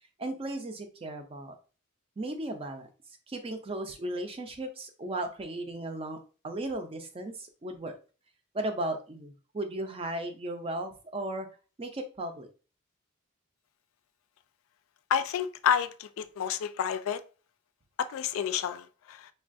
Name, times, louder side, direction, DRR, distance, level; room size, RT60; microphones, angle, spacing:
voice 1, 0.2-1.5 2.2-2.9 3.3-8.0 8.5-11.5 11.8-12.5, right 1 dB, 30° right, 0.4 m, -36 dB
voice 2, 15.1-17.2 18.0-19.3, left 8 dB, 85° left, 0.3 m, -29 dB
3.2 x 2.3 x 2.5 m
head